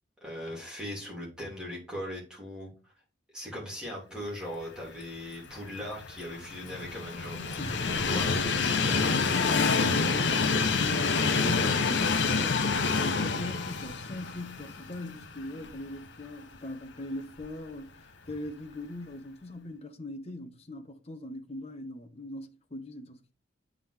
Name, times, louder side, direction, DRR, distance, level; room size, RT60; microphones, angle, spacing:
voice 1, 0.2-2.9 3.3-7.6 8.1-9.0, left 1 dB, 5° right, 2.7 m, -39 dB
Train, 5.6-15.8 16.2-16.3 17.4-17.5, left 4 dB, 70° left, 0.7 m, -27 dB
voice 2, 7.6-8.4 9.0-23.3, left 1 dB, 30° left, 0.8 m, -40 dB
8.9 x 3.8 x 3.3 m
head